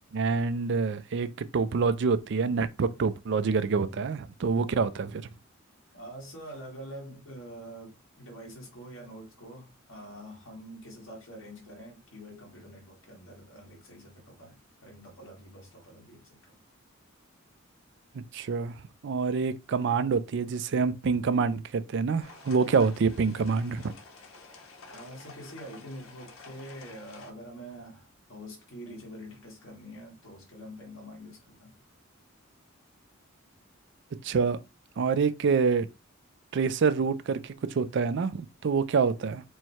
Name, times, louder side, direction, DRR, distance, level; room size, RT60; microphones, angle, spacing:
voice 1, 0.1-5.2 18.1-18.7 19.0-23.9 34.2-34.6 35.0-35.9 36.5-39.4, right 5 dB, 60° right, 0.4 m, -26 dB
voice 2, 5.9-16.6 24.9-31.7, equal, 65° left, 1.8 m, -46 dB
Heavy Rain, 22.2-27.3, left 4 dB, 90° left, 1.0 m, -50 dB
4.6 x 2.2 x 4.2 m
head